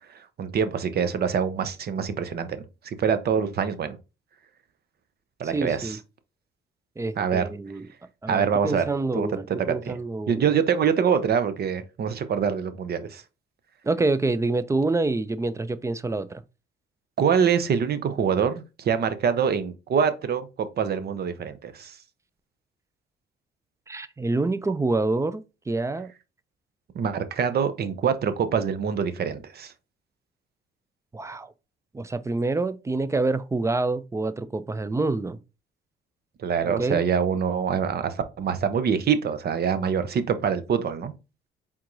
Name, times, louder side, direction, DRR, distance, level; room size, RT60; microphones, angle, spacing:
voice 1, 0.1-4.0 5.4-6.0 7.2-7.5 8.3-8.8 9.1-10.0 10.3-13.2 17.2-22.0 26.9-29.7 36.4-41.1, right 7 dB, 55° right, 0.7 m, -25 dB
voice 2, 5.4-6.0 7.0-7.9 8.2-10.4 13.8-16.4 23.9-26.1 31.1-31.5 31.9-35.4 36.6-37.0, right 3 dB, 15° right, 0.4 m, -27 dB
4.5 x 3.6 x 2.6 m
cardioid pair, 90°, 20 cm